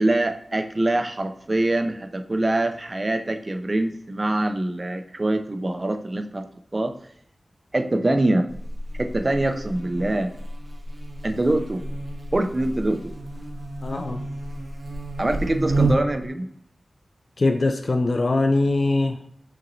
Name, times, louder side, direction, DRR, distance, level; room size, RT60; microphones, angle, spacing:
voice 1, 0.0-6.5 6.7-6.9 7.7-8.5 9.0-10.3 11.2-11.8 12.3-13.1 15.2-16.5, right 1 dB, 35° right, 7 dB, 0.4 m, -24 dB
Buzz, 8.5-16.3, right 2 dB, 60° right, 0.8 m, -30 dB
voice 2, 13.8-14.3 17.4-19.2, left 2 dB, 55° left, 6 dB, 0.4 m, -22 dB
5.8 x 2.9 x 2.6 m, 0.65 s
wide cardioid pair, 90°, 0 cm